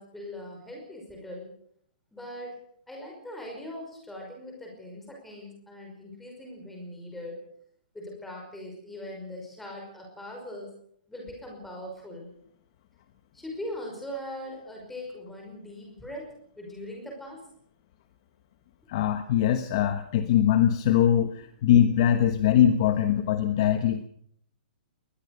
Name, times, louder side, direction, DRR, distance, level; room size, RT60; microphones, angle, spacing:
voice 1, 0.0-1.5 2.1-2.6 2.9-7.4 7.9-10.7 11.1-12.3 13.3-17.5, left 1 dB, 5° left, 0 dB, 5.6 m, -40 dB
voice 2, 18.9-24.1, left 10 dB, 30° left, 9 dB, 1.2 m, -22 dB
21.5 x 20.5 x 6.8 m, 0.66 s
hypercardioid pair, 180°, 5 cm